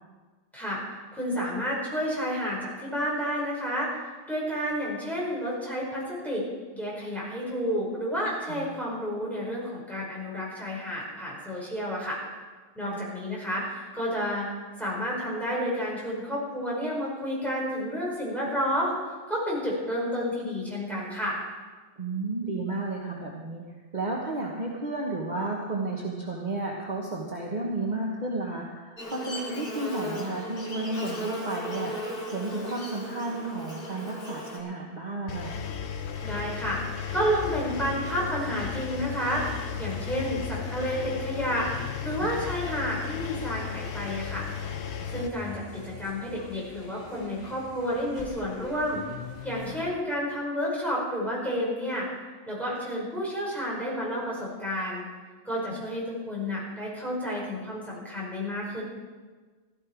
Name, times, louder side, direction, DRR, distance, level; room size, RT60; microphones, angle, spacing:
voice 1, 1.1-3.9 4.3-6.4 6.7-12.2 12.8-14.5 14.8-19.0 19.3-21.4 36.2-36.8 37.1-39.4 39.8-41.7 42.0-44.5 45.1-49.0 49.4-52.1 52.5-55.0 55.4-58.8, equal, ahead, -6 dB, 5.4 m, -30 dB
voice 2, 22.0-23.6 23.9-32.0 32.3-35.6 42.2-42.3 49.7-49.8, right 2 dB, 45° right, -2 dB, 1.5 m, -32 dB
Buzz, 29.0-34.6, equal, 60° left, 2.4 m, -36 dB
Engine, 35.3-45.3, left 8 dB, 90° left, 1.2 m, -35 dB
sound 1, 37.4-49.9, left 3 dB, 40° left, 1.7 m, -45 dB
16.0 x 13.0 x 4.7 m, 1.4 s
omnidirectional pair, 1.1 m